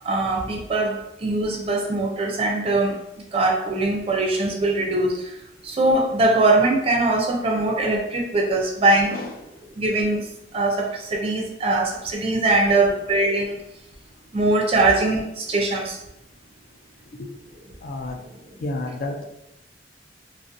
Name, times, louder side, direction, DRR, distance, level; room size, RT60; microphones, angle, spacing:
voice 1, 0.0-3.0 3.3-5.2 5.6-9.2 9.8-10.2 10.5-13.6 14.3-16.0, right 2 dB, 35° right, 1 dB, 0.3 m, -21 dB
voice 2, 17.8-18.2 18.6-19.2, left 2 dB, 50° left, 2 dB, 0.3 m, -30 dB
2.4 x 2.0 x 2.5 m, 0.84 s
head